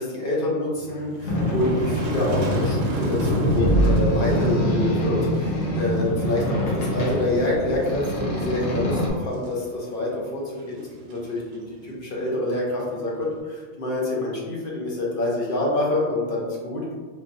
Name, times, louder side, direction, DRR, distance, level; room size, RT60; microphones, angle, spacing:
voice 1, 0.0-16.9, left 2 dB, 50° left, -4 dB, 0.8 m, -27 dB
Motor vehicle (road), 0.7-13.4, right 1 dB, 80° right, 0.9 m, -38 dB
Boat Water vehicle, 1.3-9.1, equal, 80° left, 1.1 m, -24 dB
3.3 x 2.2 x 2.5 m, 1.5 s
omnidirectional pair, 1.3 m